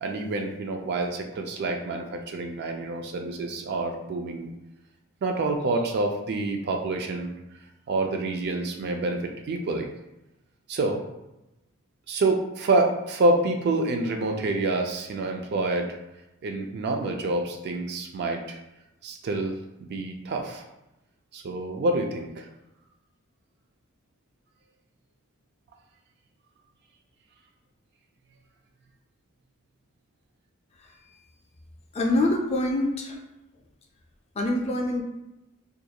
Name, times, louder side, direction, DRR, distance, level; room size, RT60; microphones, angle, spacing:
voice 1, 0.0-4.5 5.2-7.3 7.9-9.9 10.7-11.0 12.1-16.0 16.4-18.6 19.0-19.6 19.9-20.6 21.3-22.4, right 2 dB, 50° right, 3 dB, 0.3 m, -27 dB
voice 2, 31.9-33.2 34.4-35.0, left 1 dB, 30° left, 1 dB, 0.3 m, -25 dB
2.4 x 2.2 x 2.8 m, 0.94 s
head